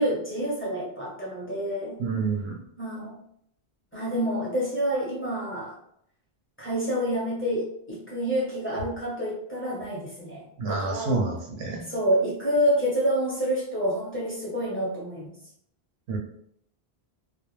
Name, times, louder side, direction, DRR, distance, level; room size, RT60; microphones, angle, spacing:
voice 1, 0.0-2.0 2.8-3.2 3.9-5.8 6.6-11.2 11.9-15.3, equal, 15° left, -6 dB, 0.8 m, -28 dB
voice 2, 2.0-2.6 10.6-11.9 16.1-16.2, right 3 dB, 85° right, -1 dB, 0.9 m, -28 dB
2.3 x 2.1 x 3.0 m, 0.70 s
omnidirectional pair, 1.1 m